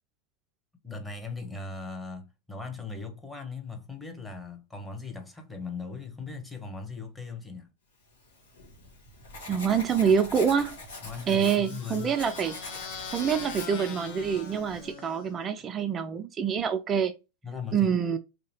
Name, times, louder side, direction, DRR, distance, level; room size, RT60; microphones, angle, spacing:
voice 1, 0.8-7.7 11.0-12.1 17.4-17.9, left 4 dB, 5° left, 1.0 m, -39 dB
Writing, 8.2-14.9, left 2 dB, 75° left, 1.4 m, -44 dB
voice 2, 9.5-10.8 11.3-12.6 13.1-17.1 17.7-18.2, right 7 dB, 30° right, 0.4 m, -26 dB
sound 1, 10.9-15.5, left 6 dB, 55° left, 0.8 m, -42 dB
3.4 x 2.7 x 2.9 m
hypercardioid pair, 95°, 0 cm